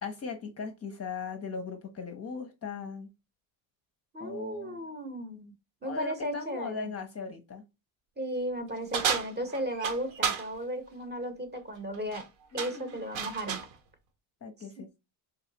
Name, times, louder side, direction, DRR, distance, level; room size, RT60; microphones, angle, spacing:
voice 1, 0.0-3.1 4.2-4.9 5.8-7.6 12.5-12.9 14.4-15.0, left 5 dB, 30° left, 0.6 m, -38 dB
voice 2, 4.1-5.5 5.8-6.9 8.2-12.3 12.5-13.7, right 1 dB, 20° right, 0.8 m, -35 dB
sound 1, 8.9-10.5 11.9-12.2 12.6-13.7, right 7 dB, 60° right, 1.0 m, -32 dB
3.8 x 2.4 x 2.8 m
supercardioid pair, 95°, 50 cm